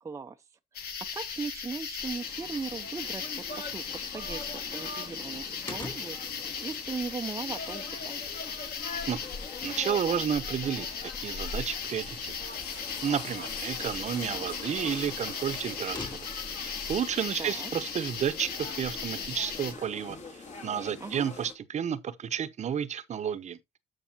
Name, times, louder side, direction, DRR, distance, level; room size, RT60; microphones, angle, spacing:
voice 1, 0.0-0.4 0.7-3.2 3.5-8.2 17.4-17.7 21.0-21.3, right 5 dB, 20° right, 0.6 m, -38 dB
sound 1, 0.7-19.7, left 6 dB, 70° left, 1.8 m, -37 dB
sound 2, 2.0-21.5, left 3 dB, 45° left, 2.2 m, -44 dB
sound 3, 5.7-16.6, left 3 dB, 25° left, 3.7 m, -50 dB
voice 2, 9.6-10.9 11.2-12.3 13.0-16.3 16.6-20.2 20.6-23.6, right 8 dB, 45° right, 0.8 m, -31 dB
12.5 x 5.4 x 2.8 m
cardioid pair, 110°, 17 cm